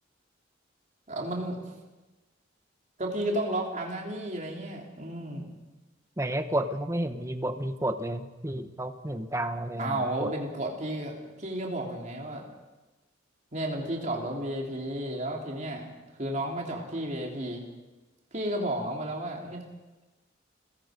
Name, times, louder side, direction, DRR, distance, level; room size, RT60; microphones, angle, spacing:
voice 1, 1.1-1.6 3.0-5.5 9.8-12.4 13.5-15.9 16.2-17.6 18.3-19.6, right 1 dB, 40° right, 0 dB, 3.6 m, -32 dB
voice 2, 6.2-10.3, right 1 dB, 15° right, 8 dB, 1.1 m, -31 dB
29.5 x 17.0 x 5.3 m, 1.1 s
head